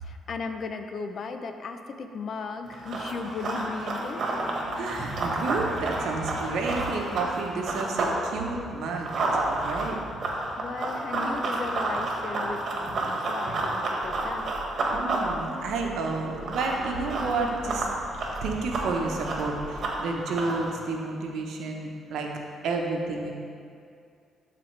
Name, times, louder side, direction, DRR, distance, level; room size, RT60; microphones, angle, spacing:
voice 1, 0.0-4.3 10.6-14.5 14.8-14.9, left 4 dB, 55° left, 7 dB, 0.5 m, -36 dB
Run, 2.7-8.2 8.5-20.7, right 2 dB, 55° right, 1.3 m, -30 dB
sound 1, 3.2-8.9 9.3-19.8, left 1 dB, 25° left, 1.5 m, -44 dB
voice 2, 4.8-10.0 14.9-17.8 18.4-22.3 22.6-23.3, right 3 dB, 80° right, 1 dB, 0.9 m, -31 dB
12.0 x 4.2 x 3.2 m, 2.4 s
cardioid pair, 90°, 0 cm